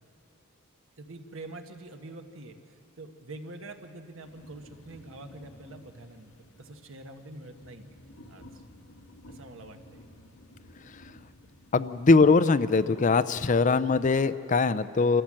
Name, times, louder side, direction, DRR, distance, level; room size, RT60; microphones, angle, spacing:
voice 1, 1.0-6.3 6.6-8.0 8.3-8.5 9.3-10.0, right 2 dB, 70° right, 5 dB, 1.3 m, -45 dB
sound 1, 4.2-13.7, left 1 dB, 85° left, 1.7 m, -54 dB
voice 2, 11.7-15.2, left 4 dB, 35° left, 13 dB, 0.4 m, -22 dB
26.0 x 14.5 x 7.6 m, 2.8 s
head